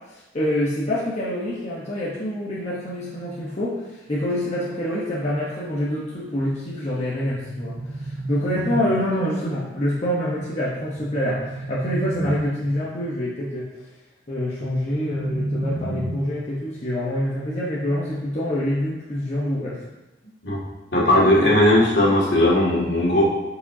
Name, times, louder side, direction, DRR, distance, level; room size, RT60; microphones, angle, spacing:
voice 1, 0.1-13.7 14.3-19.8, left 1 dB, 35° left, -7 dB, 1.1 m, -26 dB
sound 1, 7.3-9.3 11.0-12.8 14.6-16.6, right 1 dB, 30° right, 0.5 m, -30 dB
voice 2, 20.9-23.3, left 1 dB, 65° left, -5 dB, 2.2 m, -17 dB
12.0 x 5.1 x 2.8 m, 1.0 s
head